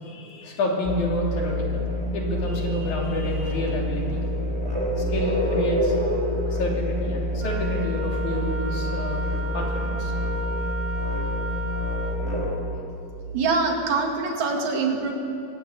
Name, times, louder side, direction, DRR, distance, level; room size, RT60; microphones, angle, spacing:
voice 1, 0.0-4.3 5.0-6.0 6.5-9.2 9.5-10.1, left 1 dB, 70° left, -1 dB, 4.6 m, -29 dB
sound 1, 0.8-12.5, equal, 10° right, 3.5 m, -27 dB
Wind instrument woodwind instrument, 7.4-12.3, right 1 dB, 45° right, 1.5 m, -34 dB
voice 2, 13.3-15.1, right 4 dB, 65° right, 2 dB, 3.3 m, -24 dB
23.0 x 13.5 x 9.5 m, 2.8 s
omnidirectional pair, 3.5 m